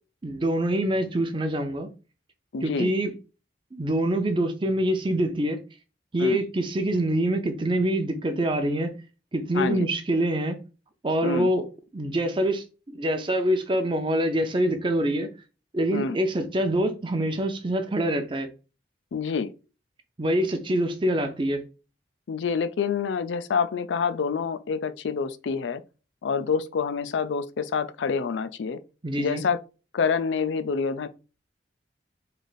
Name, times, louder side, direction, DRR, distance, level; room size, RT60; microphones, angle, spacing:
voice 1, 0.2-1.9 2.6-3.1 3.7-5.6 6.1-9.0 9.3-10.6 11.0-11.6 11.9-15.3 15.7-18.5 20.2-21.6 29.0-29.4, right 1 dB, 30° right, 0.6 m, -25 dB
voice 2, 2.5-2.9 6.2-6.4 9.5-9.8 11.2-11.5 15.9-16.2 19.1-19.5 22.3-25.8 26.2-28.8 29.2-29.6 29.9-31.1, left 5 dB, 85° left, 0.4 m, -27 dB
3.3 x 2.6 x 3.9 m
head